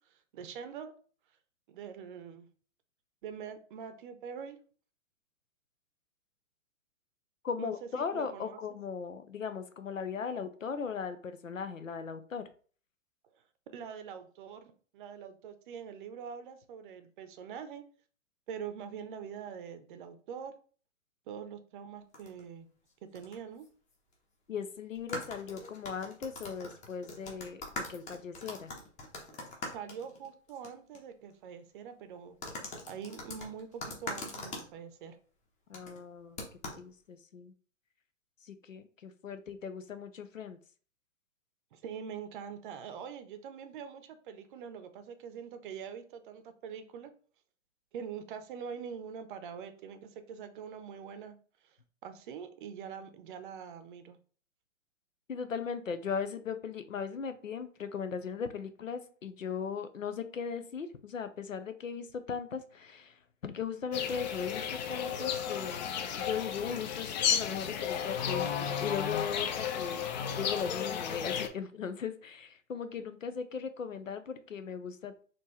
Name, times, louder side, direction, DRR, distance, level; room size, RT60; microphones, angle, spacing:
voice 1, 0.1-0.9 1.7-2.5 3.2-4.6 7.6-8.6 13.7-17.8 18.5-20.5 21.3-22.7 23.1-23.7 29.7-32.4 32.8-35.2 41.7-47.1 47.9-51.4 51.6-51.8 52.0-54.2, right 7 dB, 40° right, 10 dB, 0.7 m, -44 dB
voice 2, 7.4-12.4 24.5-27.6 27.9-28.7 35.7-36.4 36.8-37.5 38.4-40.6 55.3-68.5 68.8-70.1 70.4-75.2, left 6 dB, 85° left, 10 dB, 0.7 m, -38 dB
sound 1, 22.1-22.4 23.1-23.3 23.6-23.7 24.9-30.7 30.9-31.0 32.4-34.7 35.7-36.0 36.4-36.8, left 2 dB, 20° left, 0.9 m, -42 dB
sound 2, 63.9-71.5, left 8 dB, 35° left, 0.5 m, -33 dB
4.3 x 2.9 x 3.1 m, 0.41 s
figure-of-eight pair, 115°, 38 cm